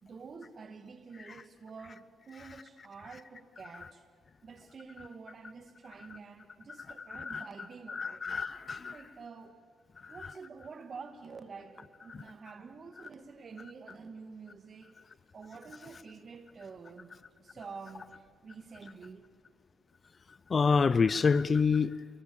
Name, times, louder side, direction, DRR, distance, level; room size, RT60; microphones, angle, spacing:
voice 1, 0.0-4.0 4.4-8.2 8.9-9.6 10.1-15.0 15.3-18.1 18.4-19.2, right 5 dB, 45° right, 2.3 m, -48 dB
voice 2, 7.1-7.5 7.9-9.0 10.0-10.3 12.1-12.2 20.5-22.0, left 5 dB, 35° left, 0.6 m, -27 dB
27.5 x 21.5 x 7.3 m
cardioid pair, 90°, 0 cm